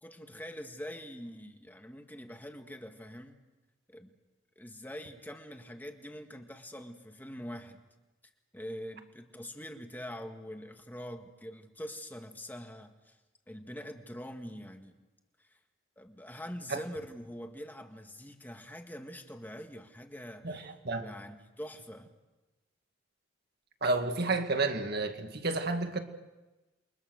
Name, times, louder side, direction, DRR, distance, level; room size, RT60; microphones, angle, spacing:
voice 1, 0.0-3.4 3.9-4.1 4.6-7.8 8.5-13.2 13.5-15.0 15.4-15.6 16.0-22.1, equal, 10° left, 5 dB, 1.7 m, -44 dB
voice 2, 20.4-21.1 23.8-26.0, right 3 dB, 55° right, 6 dB, 2.0 m, -31 dB
28.5 x 23.0 x 6.4 m, 1.1 s
head